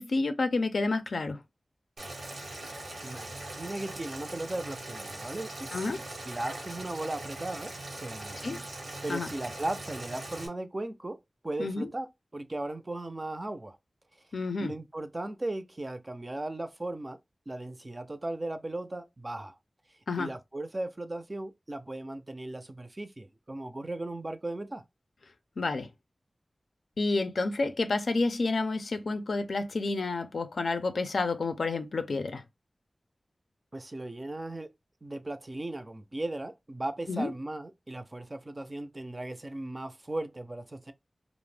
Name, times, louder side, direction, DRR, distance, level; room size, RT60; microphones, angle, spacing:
voice 1, 0.0-1.4 5.7-6.0 8.4-8.6 9.1-9.3 11.6-11.9 14.3-14.7 20.1-20.3 25.6-25.9 27.0-32.4 37.1-37.3, left 3 dB, 85° left, 0.4 m, -29 dB
Boiling, 2.0-10.5, right 2 dB, 90° right, 0.9 m, -41 dB
voice 2, 3.0-6.0 6.2-8.4 9.0-11.2 11.4-12.1 12.3-13.8 14.6-17.2 17.5-19.6 20.2-24.8 33.7-34.7 35.0-40.9, right 2 dB, 35° right, 0.4 m, -37 dB
2.4 x 2.0 x 3.2 m
wide cardioid pair, 70°, 0 cm